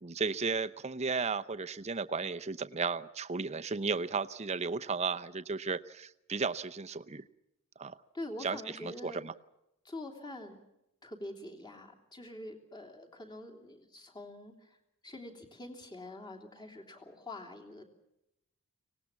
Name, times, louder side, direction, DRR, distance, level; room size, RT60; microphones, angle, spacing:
voice 1, 0.0-7.2 7.8-8.0 8.4-9.3, right 4 dB, 30° right, 10 dB, 0.7 m, -34 dB
voice 2, 8.1-9.2 9.8-10.6 11.0-14.8 15.0-17.9, left 1 dB, 20° left, 2 dB, 3.1 m, -45 dB
24.5 x 19.0 x 7.2 m, 0.86 s
head